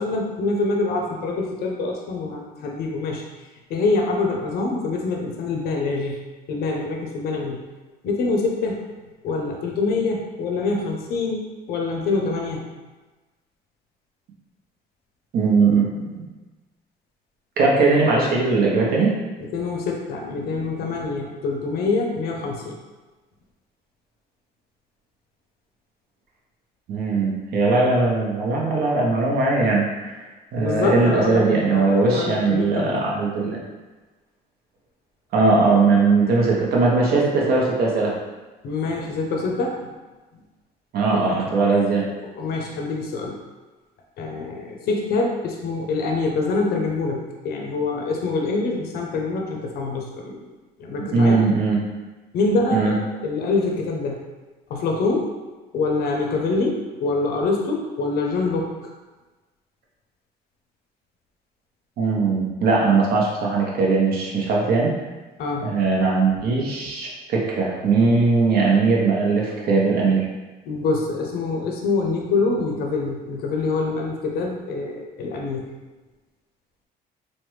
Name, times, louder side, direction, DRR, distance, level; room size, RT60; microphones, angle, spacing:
voice 1, 0.0-3.2 3.7-6.2 6.5-7.6 8.0-8.8 9.2-12.7 19.5-22.8 30.6-32.9 38.6-39.9 41.3-41.4 42.4-43.4 44.2-51.4 52.3-52.9 53.2-54.2 54.7-55.4 55.7-58.7 65.4-65.6 70.7-75.7, left 3 dB, 65° left, 1 dB, 0.6 m, -25 dB
voice 2, 15.3-16.2 17.6-19.2 26.9-30.1 30.5-33.6 35.3-38.1 40.9-42.1 51.1-51.8 52.7-53.0 62.0-65.0 65.6-70.3, right 3 dB, 65° right, -3 dB, 0.8 m, -19 dB
3.3 x 2.1 x 3.1 m, 1.2 s
cardioid pair, 110°, 17 cm